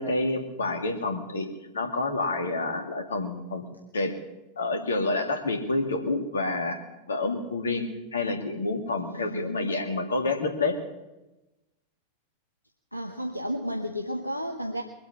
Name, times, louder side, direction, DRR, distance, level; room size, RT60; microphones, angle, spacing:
voice 1, 0.0-1.5 1.7-3.7 3.9-4.1 4.6-6.8 7.1-7.9 8.1-10.8, left 2 dB, 70° left, 6 dB, 2.1 m, -28 dB
voice 2, 9.0-9.6 12.9-14.8, equal, 90° left, 4 dB, 1.0 m, -33 dB
22.5 x 8.6 x 7.1 m, 1.0 s
figure-of-eight pair, 90°, 0 cm